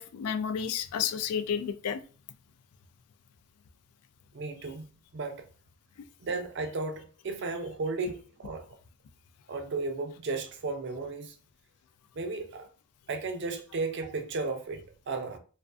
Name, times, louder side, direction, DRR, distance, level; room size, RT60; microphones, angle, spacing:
voice 1, 0.0-2.0, left 7 dB, 85° left, 0.3 m, -31 dB
voice 2, 4.3-5.4 6.2-8.7 9.5-11.3 12.1-12.7 13.1-15.4, right 3 dB, 50° right, 0.4 m, -34 dB
2.4 x 2.4 x 2.3 m
head